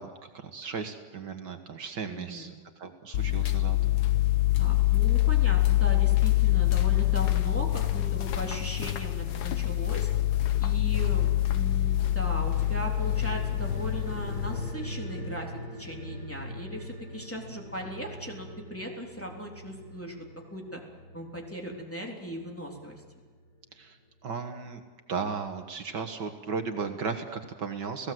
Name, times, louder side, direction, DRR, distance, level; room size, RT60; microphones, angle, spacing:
voice 1, 0.0-3.8 23.7-24.0 24.2-24.8 25.1-28.1, right 5 dB, 70° right, 6 dB, 2.1 m, -35 dB
voice 2, 2.1-2.5 4.6-10.1 10.6-15.5 15.8-20.2 20.5-20.8 21.1-23.0, equal, 5° left, -1 dB, 3.3 m, -38 dB
sound 1, 3.1-14.7, left 15 dB, 65° left, 1.4 m, -25 dB
sound 2, 12.4-23.3 23.6-23.7, equal, 45° left, 6.0 m, -42 dB
30.0 x 17.0 x 7.8 m, 1.5 s
omnidirectional pair, 2.0 m